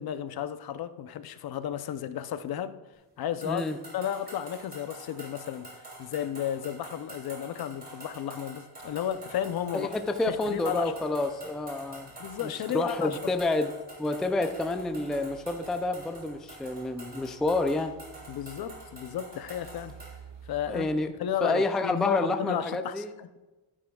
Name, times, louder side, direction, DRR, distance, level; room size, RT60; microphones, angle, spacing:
voice 1, 0.0-2.8 3.2-3.6 3.9-5.7 6.0-9.9 10.3-10.9 12.2-13.2 18.3-20.0 20.5-20.9 21.2-23.3, left 10 dB, 60° left, 11 dB, 0.7 m, -33 dB
voice 2, 3.4-3.8 9.7-12.1 12.4-13.7 14.0-17.9 20.7-21.1 21.4-23.1, left 2 dB, ahead, 6 dB, 0.3 m, -29 dB
sound 1, 3.4-20.2, right 2 dB, 20° right, 2.7 m, -47 dB
sound 2, 8.8-21.4, right 7 dB, 85° right, 1.5 m, -54 dB
13.0 x 9.9 x 2.3 m, 1.2 s
wide cardioid pair, 160°, 41 cm